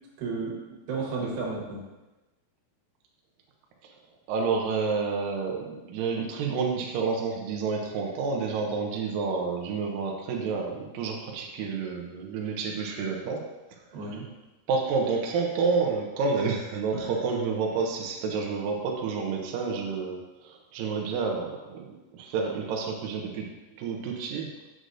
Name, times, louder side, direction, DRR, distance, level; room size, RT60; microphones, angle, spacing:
voice 1, 0.2-1.8 13.9-14.3 16.9-17.1, right 4 dB, 65° right, -3 dB, 2.8 m, -33 dB
voice 2, 4.3-13.4 14.7-23.5 23.7-24.5, right 4 dB, 85° right, 0 dB, 1.9 m, -29 dB
7.8 x 6.3 x 2.6 m, 1.1 s
omnidirectional pair, 4.9 m